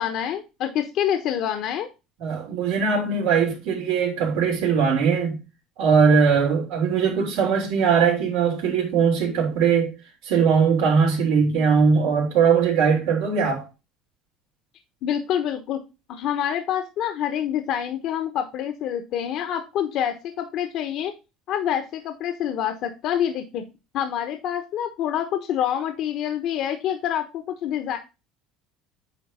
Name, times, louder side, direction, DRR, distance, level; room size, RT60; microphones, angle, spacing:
voice 1, 0.0-1.9 15.0-15.8 16.1-21.1 21.5-23.6 23.9-28.0, left 10 dB, 60° left, 1.1 m, -26 dB
voice 2, 2.2-5.4 5.8-9.9 10.2-13.6, right 6 dB, 80° right, 3.6 m, -20 dB
9.1 x 3.5 x 5.4 m
supercardioid pair, 100°, 0 cm